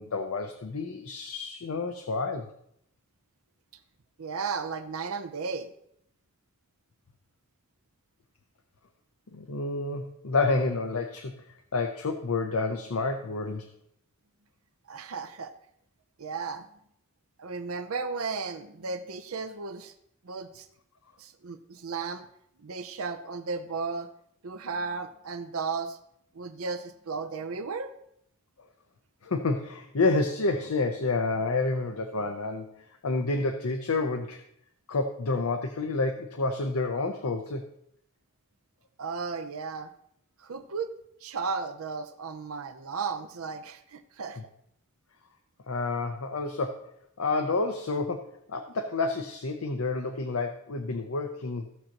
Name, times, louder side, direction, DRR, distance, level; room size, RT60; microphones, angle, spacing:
voice 1, 0.0-2.5 9.3-11.3 11.7-13.7 29.2-32.7 33.0-34.4 34.9-37.7 45.7-51.7, left 3 dB, 90° left, 5 dB, 0.7 m, -29 dB
voice 2, 4.2-5.7 14.9-15.5 16.2-16.7 17.4-19.9 20.2-20.7 21.2-22.3 22.6-24.1 24.4-26.0 26.3-27.9 39.0-39.9 40.4-40.9 41.2-44.4, right 4 dB, 80° right, 8 dB, 0.7 m, -34 dB
15.5 x 6.4 x 3.0 m, 0.73 s
head